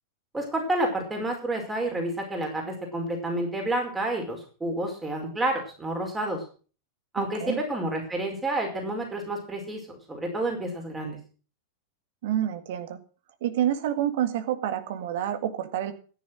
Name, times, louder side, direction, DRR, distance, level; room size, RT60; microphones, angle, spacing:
voice 1, 0.3-6.4 7.1-11.2, right 1 dB, 10° right, 2 dB, 4.9 m, -29 dB
voice 2, 7.2-7.6 12.2-13.0 13.4-15.9, right 11 dB, 55° right, 9 dB, 1.8 m, -28 dB
14.0 x 10.5 x 6.4 m, 0.39 s
figure-of-eight pair, 90°, 0 cm